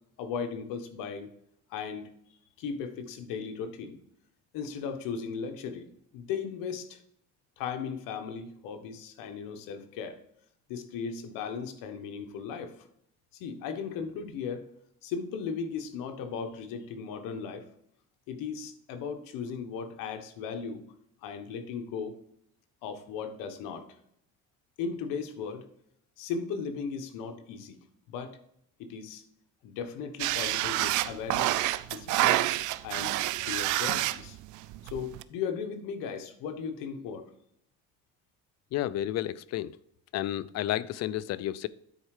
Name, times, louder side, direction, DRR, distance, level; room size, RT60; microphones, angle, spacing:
voice 1, 0.2-1.3 1.7-2.1 2.6-4.0 4.5-5.9 6.1-7.0 7.6-10.2 10.7-12.9 13.3-14.6 15.0-17.7 18.3-20.8 21.2-22.1 22.8-23.9 24.8-25.6 26.2-27.8 28.1-28.4 28.8-29.2 29.6-32.4 32.8-33.1 33.4-34.4 34.8-37.2, left 6 dB, 85° left, 1.2 m, -37 dB
sound 1, 30.2-35.2, right 16 dB, 65° right, 0.5 m, -28 dB
voice 2, 38.7-39.7 40.1-41.7, left 13 dB, 55° left, 0.5 m, -31 dB
9.8 x 4.5 x 4.8 m
cardioid pair, 120°, 32 cm